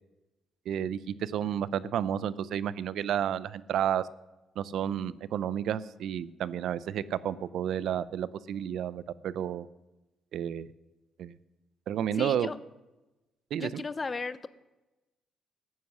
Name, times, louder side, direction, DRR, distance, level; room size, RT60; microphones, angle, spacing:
voice 1, 0.7-4.0 4.6-9.7 10.3-10.7 11.2-11.4 11.9-12.5 13.5-13.8, right 9 dB, 75° right, 18 dB, 0.5 m, -31 dB
voice 2, 12.1-12.6 13.6-14.5, left 4 dB, 30° left, 16 dB, 0.6 m, -35 dB
14.0 x 9.6 x 6.2 m, 1.1 s
cardioid pair, 90°, 0 cm